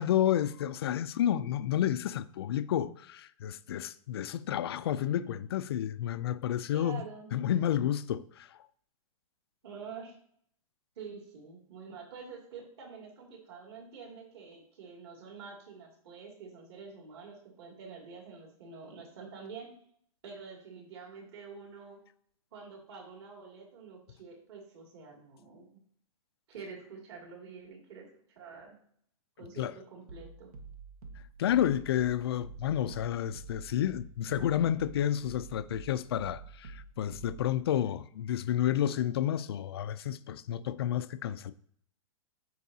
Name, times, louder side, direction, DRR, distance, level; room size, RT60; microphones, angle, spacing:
voice 1, 0.0-7.0 7.3-8.5 29.6-29.7 31.4-41.5, left 11 dB, 45° left, 0.4 m, -30 dB
voice 2, 6.7-7.3 9.6-10.2 11.0-19.7 20.2-22.0 22.5-25.8 26.5-28.1 28.4-28.8 29.4-30.5, right 5 dB, 45° right, 2.6 m, -47 dB
sound 1, 30.1-37.6, right 4 dB, 90° right, 1.4 m, -48 dB
14.0 x 4.7 x 2.8 m
hypercardioid pair, 175°, 19 cm